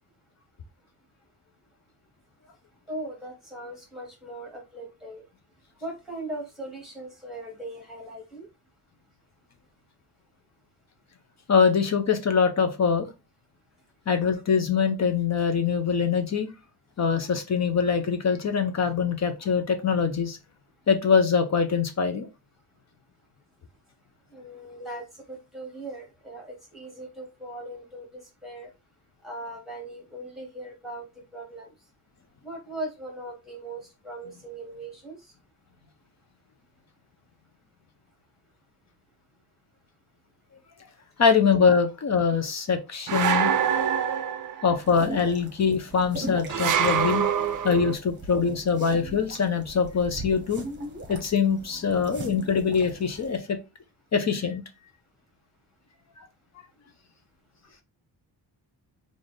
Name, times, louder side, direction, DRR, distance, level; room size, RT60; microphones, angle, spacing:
voice 1, 2.9-5.2 5.8-8.5 24.3-28.7 29.2-31.0 31.3-31.7 32.4-35.2, right 1 dB, ahead, 0 dB, 1.4 m, -39 dB
voice 2, 11.5-13.1 14.1-16.5 17.0-20.4 20.9-22.3 24.8-25.0 41.2-43.5 44.6-47.3 47.6-50.6 51.1-53.6 54.1-54.6, left 6 dB, 40° left, 7 dB, 0.6 m, -23 dB
sound 1, 43.1-44.7 46.5-47.9, right 8 dB, 50° right, 0.5 m, -25 dB
sound 2, 44.8-53.4, right 1 dB, 25° right, 0.9 m, -40 dB
3.3 x 2.5 x 3.9 m, 0.24 s
wide cardioid pair, 160°, 42 cm